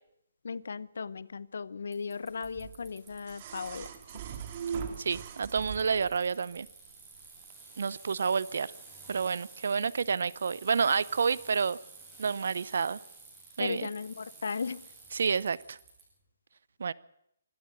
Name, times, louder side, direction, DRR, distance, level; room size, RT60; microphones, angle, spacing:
voice 1, 0.4-3.9 13.6-14.9, left 5 dB, 70° left, 0.8 m, -36 dB
Bicycle, 1.9-16.0, right 4 dB, 10° right, 7.5 m, -52 dB
sound 1, 2.4-6.2 7.4-7.5, right 7 dB, 35° right, 2.1 m, -40 dB
voice 2, 5.0-6.7 7.8-8.7 9.1-11.8 12.2-13.0 13.6-13.9 15.1-15.8 16.8-16.9, right 5 dB, 65° right, 0.8 m, -29 dB
23.5 x 12.5 x 9.0 m
hypercardioid pair, 160°, 0 cm